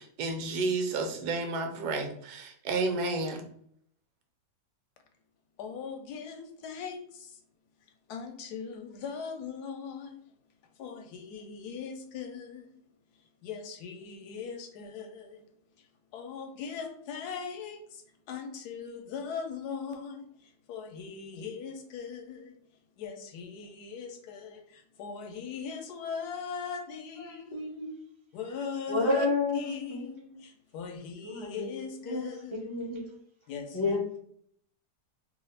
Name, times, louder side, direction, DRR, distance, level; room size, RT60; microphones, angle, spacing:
voice 1, 0.0-3.4, right 3 dB, 75° right, 1.1 m, -31 dB
voice 2, 5.6-7.4 8.1-10.2 10.8-12.8 13.4-15.4 15.8-15.9 16.1-22.6 23.0-27.5 28.3-29.3 29.5-32.7 33.5-34.2, left 6 dB, 75° left, 1.1 m, -40 dB
voice 3, 27.2-28.0 28.9-30.4 31.2-31.8 32.1-33.2 33.7-34.0, left 2 dB, 50° left, 0.3 m, -31 dB
2.9 x 2.3 x 3.2 m
omnidirectional pair, 1.8 m